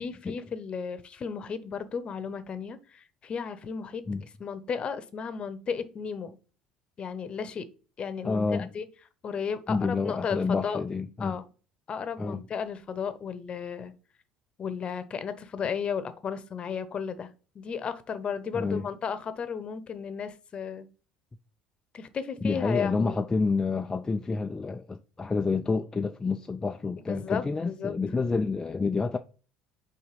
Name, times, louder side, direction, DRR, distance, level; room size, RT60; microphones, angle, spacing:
voice 1, 0.0-4.0 4.4-6.4 7.0-7.7 8.0-8.9 9.2-10.8 11.2-11.4 11.9-13.9 14.6-17.3 17.5-20.9 21.9-23.1 27.1-27.9, left 6 dB, 40° left, 0.9 m, -34 dB
voice 2, 8.2-8.7 9.7-11.3 12.2-12.4 18.5-18.9 22.4-29.2, left 4 dB, 20° left, 0.4 m, -28 dB
5.6 x 3.6 x 5.2 m
hypercardioid pair, 65°, 3 cm